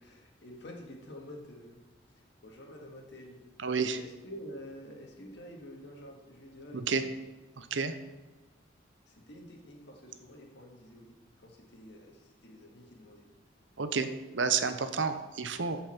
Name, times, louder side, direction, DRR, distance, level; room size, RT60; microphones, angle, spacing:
voice 1, 0.0-1.8 2.2-3.4 4.0-7.1 9.1-13.3, equal, 65° left, 1 dB, 1.9 m, -48 dB
voice 2, 3.6-4.0 6.7-7.0 7.6-7.9 13.8-14.1 14.3-15.8, right 5 dB, 70° right, 10 dB, 0.8 m, -30 dB
14.0 x 5.6 x 4.5 m, 1.2 s
head